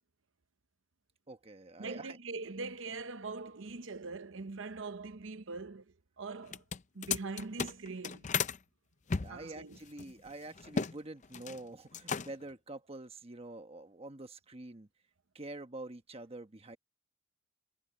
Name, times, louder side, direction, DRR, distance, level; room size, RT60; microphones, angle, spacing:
voice 1, 1.3-2.2 9.2-14.9 15.3-16.8, right 2 dB, 30° right, 1.2 m, -46 dB
voice 2, 1.8-6.6 6.9-8.3 9.3-9.8, right 3 dB, 65° right, 0.9 m, -42 dB
sound 1, 6.4-8.6 9.1-10.9 11.2-11.6 11.9-12.5, left 5 dB, 35° left, 0.6 m, -35 dB
head